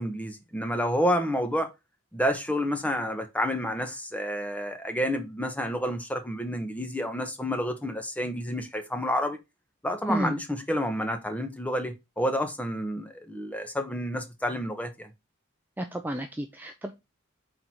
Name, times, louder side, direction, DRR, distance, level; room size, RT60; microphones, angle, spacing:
voice 1, 0.0-1.7 2.1-9.4 9.8-15.1, equal, 5° left, 0.9 m, -29 dB
voice 2, 15.8-16.9, right 1 dB, 10° right, 0.5 m, -31 dB
4.5 x 3.9 x 5.6 m
head